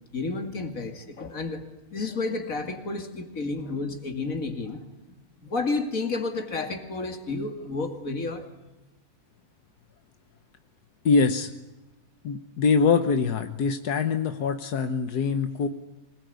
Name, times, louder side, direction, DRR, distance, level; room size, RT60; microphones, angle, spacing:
voice 1, 0.1-4.9 5.4-8.5, left 3 dB, 60° left, 2.8 m, -31 dB
voice 2, 11.0-11.5 12.2-15.7, left 5 dB, 90° left, 1.7 m, -23 dB
25.5 x 20.0 x 9.4 m
omnidirectional pair, 1.6 m